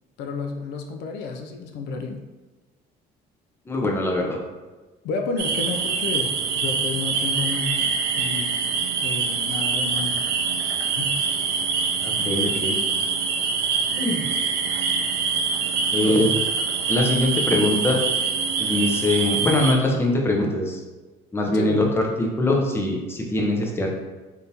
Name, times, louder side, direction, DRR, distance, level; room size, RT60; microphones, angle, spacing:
voice 1, 0.2-2.2 5.0-6.3 6.6-8.7 9.0-10.3 10.9-11.2 12.2-12.3 16.0-16.3 21.5-21.9, left 4 dB, 85° left, 4 dB, 0.4 m, -31 dB
voice 2, 3.7-4.4 12.0-12.8 14.0-14.3 15.9-16.3 16.9-18.0 18.6-20.8 21.3-24.0, left 1 dB, 15° left, 0 dB, 0.6 m, -22 dB
sound 1, 5.4-19.7, right 5 dB, 75° right, 0.4 m, -24 dB
3.5 x 2.6 x 2.8 m, 1.2 s
cardioid pair, 110°, 17 cm